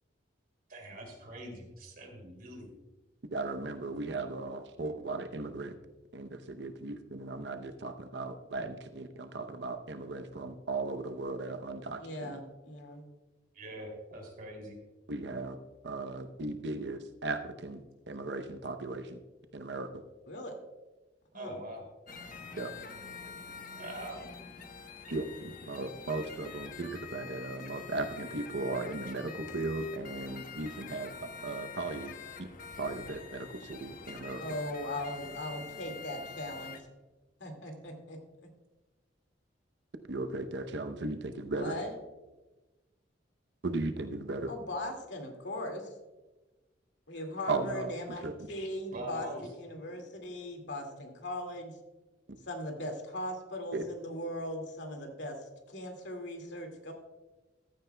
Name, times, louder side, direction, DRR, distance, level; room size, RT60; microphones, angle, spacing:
voice 1, 0.7-2.7 13.5-14.8 21.3-21.8 23.8-24.2 48.9-49.5, right 1 dB, 50° right, 2 dB, 2.8 m, -43 dB
voice 2, 3.3-5.7 6.1-12.4 15.1-15.6 15.8-19.2 19.5-19.9 22.5-22.7 25.1-31.2 31.4-32.5 32.8-34.4 40.1-41.8 43.6-44.5 47.5-48.3 53.7-53.8, right 3 dB, 70° right, 8 dB, 0.7 m, -37 dB
voice 3, 12.0-13.1 20.3-20.6 21.3-21.6 34.4-36.8 37.4-38.2 41.5-41.9 44.5-45.9 47.1-51.7 52.5-56.9, left 1 dB, 75° left, 3 dB, 2.1 m, -39 dB
sound 1, 22.1-36.8, left 5 dB, 50° left, 1.0 m, -46 dB
14.5 x 13.0 x 2.2 m, 1.1 s
head